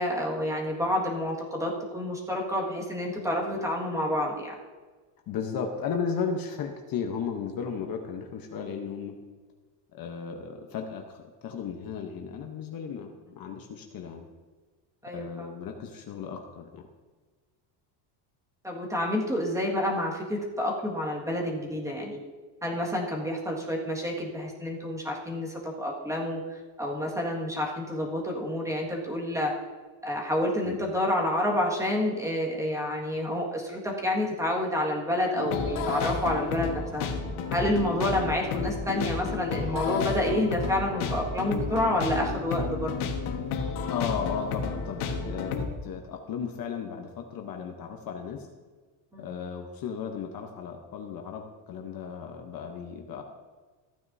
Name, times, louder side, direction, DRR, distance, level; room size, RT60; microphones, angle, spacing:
voice 1, 0.0-4.5 15.0-15.5 18.6-22.2 22.6-29.6 30.0-37.1 37.5-42.9 49.1-49.3, left 1 dB, 5° right, -2 dB, 1.8 m, -29 dB
voice 2, 5.3-9.2 9.9-14.3 15.1-16.8 30.6-30.8 38.2-38.3 43.9-48.5 49.2-53.2, left 6 dB, 45° left, 3 dB, 1.0 m, -35 dB
sound 1, 35.3-45.7, left 5 dB, 75° left, 1.5 m, -31 dB
14.5 x 9.3 x 2.7 m, 1.3 s
cardioid pair, 145°, 50 cm